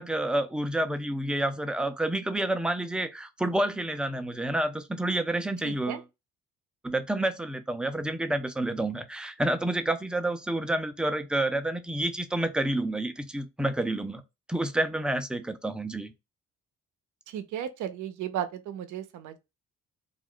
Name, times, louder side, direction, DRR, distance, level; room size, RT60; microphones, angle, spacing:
voice 1, 0.0-6.0 6.8-14.2 14.5-16.1, right 1 dB, 5° right, 0.4 m, -29 dB
voice 2, 5.6-6.0 17.3-19.4, right 10 dB, 80° right, 0.6 m, -35 dB
2.4 x 2.2 x 3.7 m
cardioid pair, 90°, 30 cm